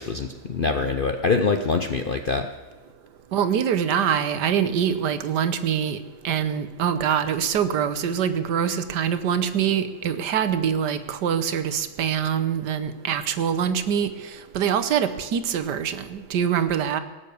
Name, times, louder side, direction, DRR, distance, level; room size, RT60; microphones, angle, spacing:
voice 1, 0.0-2.5, left 4 dB, 55° left, 6 dB, 0.6 m, -24 dB
voice 2, 3.3-6.0 6.2-14.1 14.5-17.0, right 8 dB, 80° right, 11 dB, 1.5 m, -24 dB
18.0 x 7.1 x 8.3 m, 1.2 s
omnidirectional pair, 1.8 m